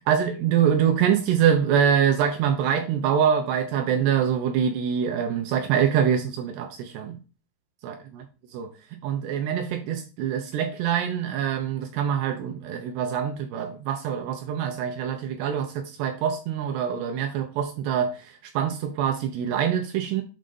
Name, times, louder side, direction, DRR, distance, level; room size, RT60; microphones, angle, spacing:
voice 1, 0.1-7.2 7.8-8.3 8.5-8.7 9.0-20.2, right 8 dB, 80° right, 2.5 m, -24 dB
7.5 x 2.5 x 5.3 m
omnidirectional pair, 5.1 m